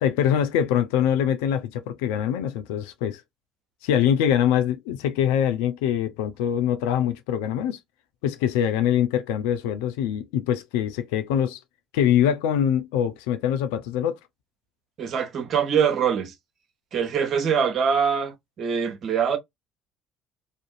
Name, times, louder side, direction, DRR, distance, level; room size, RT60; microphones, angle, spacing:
voice 1, 0.0-3.2 3.8-7.8 8.2-11.6 11.9-14.2, left 9 dB, 75° left, 0.4 m, -23 dB
voice 2, 15.0-16.3 16.9-19.4, right 7 dB, 55° right, 0.7 m, -23 dB
2.5 x 2.5 x 2.4 m
hypercardioid pair, 60°, 0 cm